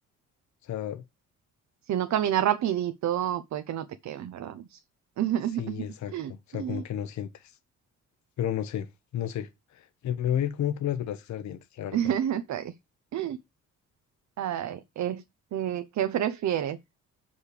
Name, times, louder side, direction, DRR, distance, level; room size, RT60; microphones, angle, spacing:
voice 1, 0.6-1.0 5.5-7.6 8.4-8.9 9.1-12.1, left 10 dB, 65° left, 0.9 m, -32 dB
voice 2, 1.9-4.8 5.2-5.8 6.1-6.8 11.9-12.7 13.1-13.4 14.4-15.2 15.5-16.8, right 11 dB, 65° right, 0.8 m, -29 dB
6.7 x 5.5 x 4.9 m
cardioid pair, 90°, 30 cm